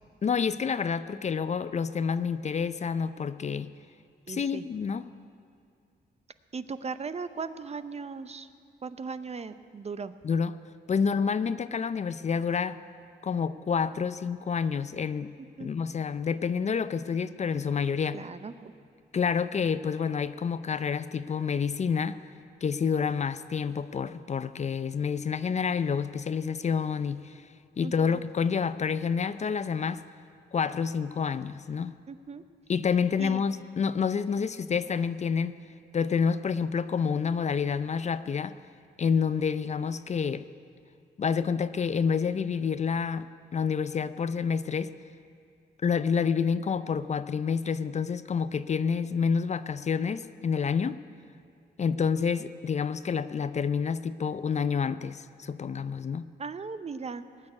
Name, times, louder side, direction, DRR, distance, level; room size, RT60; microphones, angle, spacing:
voice 1, 0.2-3.7 4.3-5.1 10.2-10.6 10.9-12.8 13.2-15.3 15.6-18.2 19.1-22.2 22.6-27.4 27.8-30.0 30.5-31.9 32.7-35.6 35.9-38.5 39.0-40.5 41.2-44.9 45.8-51.0 51.8-56.2, left 6 dB, 40° left, 14 dB, 0.5 m, -28 dB
voice 2, 4.3-4.6 6.5-8.5 8.8-10.1 15.6-15.7 18.1-18.7 27.8-28.2 32.1-32.4 33.2-33.4 56.4-57.5, right 5 dB, 35° right, 12 dB, 0.7 m, -38 dB
19.0 x 6.5 x 9.6 m, 2.3 s
cardioid pair, 80°, 18 cm